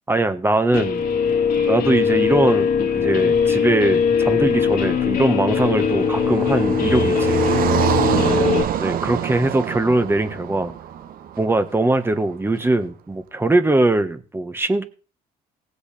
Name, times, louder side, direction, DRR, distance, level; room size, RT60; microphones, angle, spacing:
voice 1, 0.1-1.0 1.7-7.5 8.8-10.7 11.4-14.8, right 2 dB, 15° right, 9 dB, 1.4 m, -21 dB
Guitar, 0.7-8.6, left 6 dB, 60° left, 2.2 m, -20 dB
Car passing by, 4.7-11.9, right 9 dB, 60° right, 1.0 m, -26 dB
18.5 x 8.2 x 3.4 m, 0.36 s
cardioid pair, 110°, 17 cm